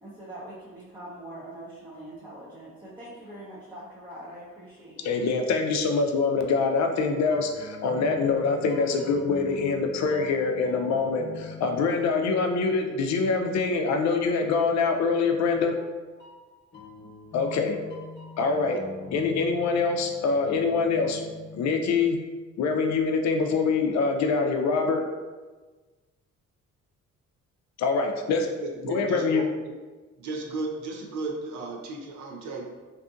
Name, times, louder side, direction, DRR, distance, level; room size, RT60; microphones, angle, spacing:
voice 1, 0.0-5.3, right 1 dB, 15° right, -9 dB, 0.7 m, -43 dB
voice 2, 5.0-15.8 17.3-17.8 18.4-18.8 19.1-21.2 21.5-22.2 22.6-25.0 27.8-28.5 28.8-29.5, left 4 dB, 65° left, 4 dB, 0.4 m, -24 dB
sound 1, 7.1-13.8 15.6-22.2, left 4 dB, 35° left, 0.9 m, -44 dB
voice 3, 28.6-29.4 30.2-32.6, right 3 dB, 75° right, 1 dB, 0.6 m, -34 dB
2.6 x 2.5 x 2.4 m, 1.3 s
cardioid pair, 90°, 30 cm